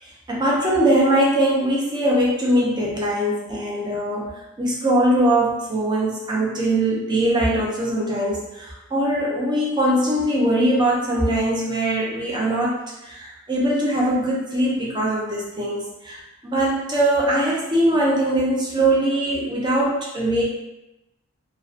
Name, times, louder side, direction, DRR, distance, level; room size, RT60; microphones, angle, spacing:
voice 1, 0.3-4.3 4.6-20.4, right 1 dB, 20° right, -4 dB, 0.5 m, -21 dB
2.6 x 2.1 x 2.4 m, 0.94 s
head